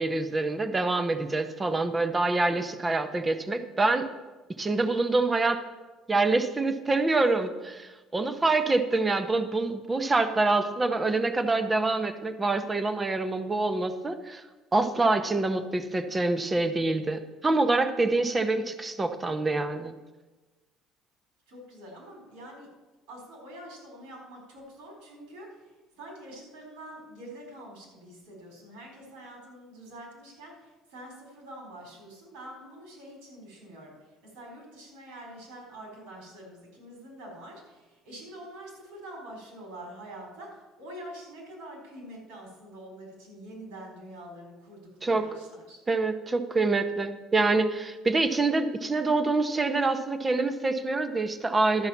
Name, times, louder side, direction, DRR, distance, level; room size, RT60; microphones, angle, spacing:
voice 1, 0.0-4.1 4.6-5.6 6.1-14.4 14.7-19.9 45.0-45.2 45.9-51.9, right 3 dB, 15° right, 9 dB, 0.7 m, -26 dB
voice 2, 21.5-22.7 23.1-45.8, right 1 dB, 90° right, 0 dB, 4.0 m, -45 dB
12.0 x 5.5 x 7.1 m, 1.2 s
cardioid pair, 135°, 0 cm